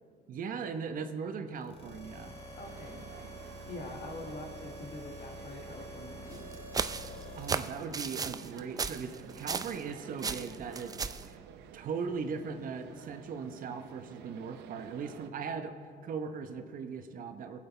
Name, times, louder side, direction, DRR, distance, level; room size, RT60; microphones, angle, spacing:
voice 1, 0.3-2.4 7.3-11.0 11.2-11.4 11.7-15.7 16.0-17.6, right 5 dB, 55° right, 7 dB, 1.0 m, -39 dB
sound 1, 1.6-7.6, equal, 35° left, 1.7 m, -47 dB
voice 2, 2.6-3.0 3.7-6.5, left 2 dB, 55° left, 2 dB, 2.0 m, -44 dB
sound 2, 2.6-15.3, right 9 dB, 80° right, 0.7 m, -52 dB
sound 3, 6.3-9.9 10.2-11.3, right 5 dB, 20° right, 0.4 m, -35 dB
19.5 x 7.8 x 4.4 m, 2.2 s
cardioid pair, 110°, 17 cm